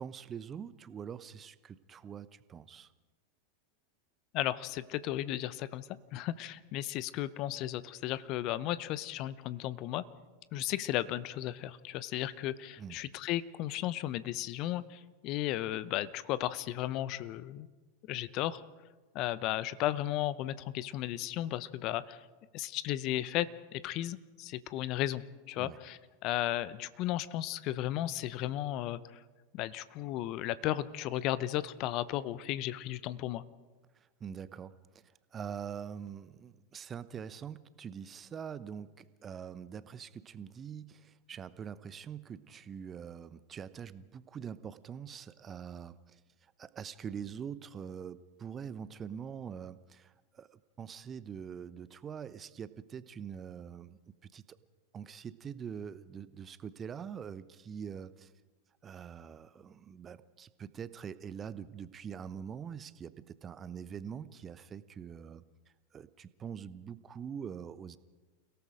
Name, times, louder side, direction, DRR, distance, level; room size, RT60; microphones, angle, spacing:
voice 1, 0.0-2.9 12.8-13.0 25.6-25.8 33.9-34.7 35.3-46.2 46.6-54.6 54.9-58.3 58.8-65.4 65.9-68.0, right 7 dB, 25° right, 15 dB, 0.9 m, -44 dB
voice 2, 4.3-10.0 10.5-17.7 18.1-18.6 19.1-22.2 22.5-25.2 25.5-29.0 29.5-33.4, left 14 dB, 45° left, 17 dB, 0.9 m, -35 dB
29.5 x 17.5 x 5.0 m, 1.3 s
figure-of-eight pair, 90°, 0 cm